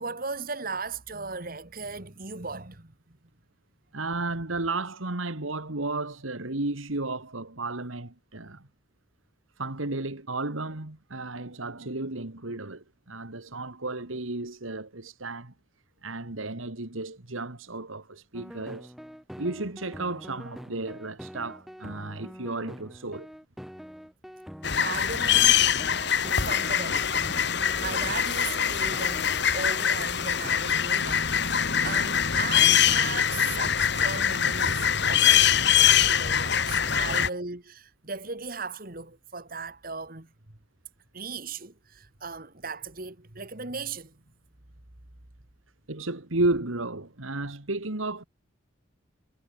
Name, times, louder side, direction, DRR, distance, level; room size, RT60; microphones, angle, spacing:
voice 1, 0.0-2.9 24.8-25.6 26.4-40.3 41.1-44.2, right 4 dB, 45° right, 2.1 m, -37 dB
voice 2, 3.9-8.7 9.6-15.5 16.0-18.9 19.4-23.3 45.9-48.2, right 2 dB, 85° right, 2.4 m, -33 dB
sound 1, 18.3-29.9 30.4-30.6 31.1-31.2 31.7-31.8 32.3-32.5 33.0-33.1 33.7-33.8 34.5-34.6 35.2-35.4 36.0-36.1 36.8-37.0, equal, ahead, 3.6 m, -45 dB
sound 2, 24.6-37.3, left 9 dB, 60° left, 1.9 m, -23 dB
head